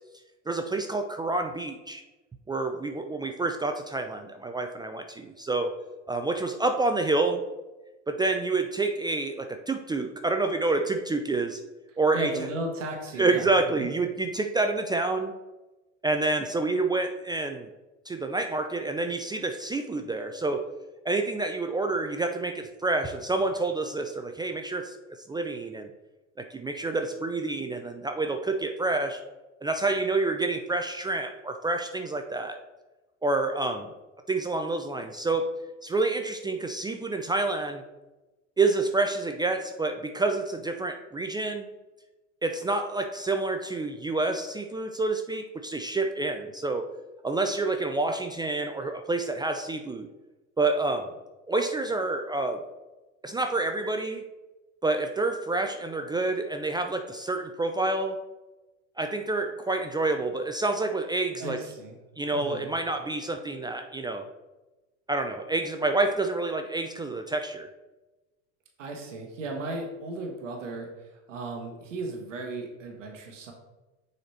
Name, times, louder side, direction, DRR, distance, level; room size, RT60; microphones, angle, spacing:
voice 1, 0.5-2.0 2.5-5.7 6.1-7.4 8.1-11.6 12.0-12.3 13.2-15.3 16.0-17.7 18.1-20.6 21.0-25.0 25.3-25.9 26.4-29.2 29.6-32.6 33.2-33.9 34.3-35.5 35.8-37.8 38.6-41.7 42.4-46.8 47.2-50.1 50.6-51.1 51.5-52.6 53.2-54.2 54.8-58.2 59.0-61.6 62.2-64.3 65.1-67.7, right 3 dB, 10° right, 5 dB, 0.4 m, -28 dB
voice 2, 11.9-13.5 13.8-13.9 61.4-62.0 62.3-62.7 68.8-73.5, right 2 dB, 90° right, 2 dB, 1.1 m, -36 dB
6.6 x 4.2 x 4.2 m, 1.1 s
hypercardioid pair, 85°, 36 cm